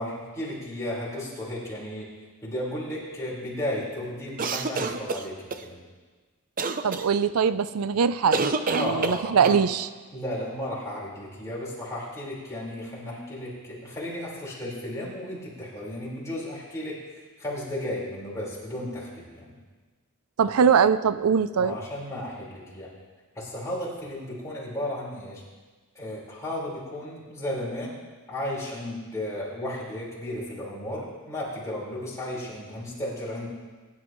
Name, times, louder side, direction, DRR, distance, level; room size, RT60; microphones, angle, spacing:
voice 1, 0.0-2.1 2.4-5.8 8.8-9.6 10.1-17.0 17.4-19.5 21.6-22.9 23.3-25.4 25.9-27.9 28.3-33.5, left 1 dB, 15° left, -6 dB, 4.6 m, -34 dB
sound 1, 4.4-5.6 6.6-7.0 8.3-9.6, right 4 dB, 40° right, 0.6 m, -27 dB
voice 2, 6.8-9.9 20.4-21.8, right 6 dB, 80° right, 14 dB, 0.5 m, -22 dB
22.0 x 11.5 x 3.1 m, 1.4 s
head